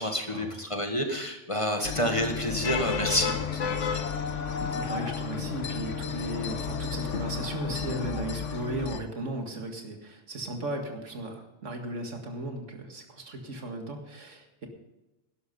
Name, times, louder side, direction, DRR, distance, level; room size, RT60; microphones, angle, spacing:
voice 1, 0.0-4.1, equal, 25° left, 4 dB, 1.6 m, -29 dB
sound 1, 1.8-9.0, left 6 dB, 80° left, 1.3 m, -32 dB
voice 2, 4.7-14.7, right 1 dB, 85° right, 3 dB, 2.3 m, -36 dB
11.5 x 11.5 x 5.4 m, 1.0 s
omnidirectional pair, 1.2 m